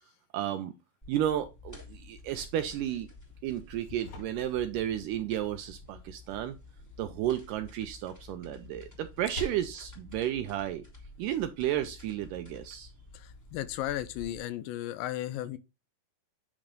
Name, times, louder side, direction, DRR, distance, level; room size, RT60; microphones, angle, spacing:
voice 1, 0.3-0.8 1.1-3.1 3.4-6.6 7.0-10.8 11.2-12.9, right 11 dB, 80° right, 1.9 m, -32 dB
sound 1, 1.0-14.4, left 3 dB, 10° left, 1.1 m, -51 dB
sound 2, 3.6-11.5, left 1 dB, 50° left, 3.3 m, -50 dB
voice 2, 13.1-15.6, left 13 dB, 85° left, 2.3 m, -35 dB
8.6 x 3.1 x 5.1 m
omnidirectional pair, 4.2 m